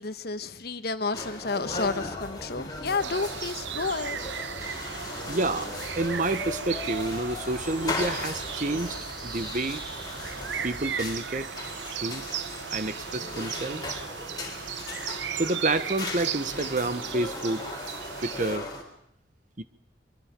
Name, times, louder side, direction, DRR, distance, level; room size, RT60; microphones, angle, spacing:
voice 1, 0.0-4.2, left 4 dB, 55° left, 1.2 m, -31 dB
sound 1, 1.1-18.8, left 2 dB, 20° left, 3.9 m, -38 dB
sound 2, 1.7-11.2, right 1 dB, 25° right, 2.1 m, -46 dB
sound 3, 3.0-18.6, right 8 dB, 70° right, 0.8 m, -36 dB
voice 2, 5.2-5.7 6.0-9.0 9.2-9.8 10.6-11.5 12.0-12.2 12.7-14.0 15.3-17.9 18.2-18.7 19.6-19.7, right 2 dB, 45° right, 1.0 m, -29 dB
24.0 x 24.0 x 5.2 m
head